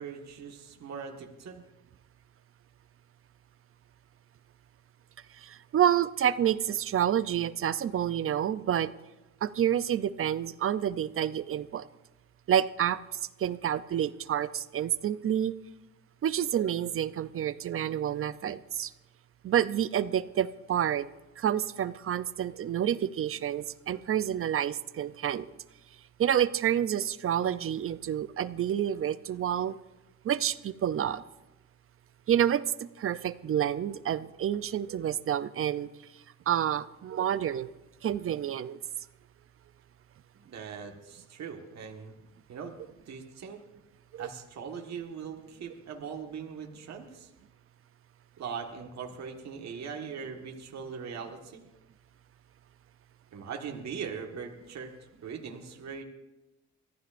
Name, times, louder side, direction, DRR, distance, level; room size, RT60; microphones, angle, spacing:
voice 1, 0.0-1.6 40.3-42.1 42.5-42.7 43.1-43.6 44.2-47.3 48.4-51.6 53.3-54.9 55.2-56.0, right 6 dB, 60° right, 2 dB, 1.6 m, -40 dB
voice 2, 5.3-8.9 9.4-11.9 12.5-13.0 13.4-15.5 16.2-18.9 19.4-21.1 21.4-25.5 26.2-29.8 30.2-31.2 32.3-32.6 33.0-35.9 36.5-37.7 38.0-38.8 44.1-44.3, right 10 dB, 45° right, 15 dB, 0.6 m, -28 dB
23.5 x 14.5 x 2.6 m, 1.0 s
cardioid pair, 90°, 30 cm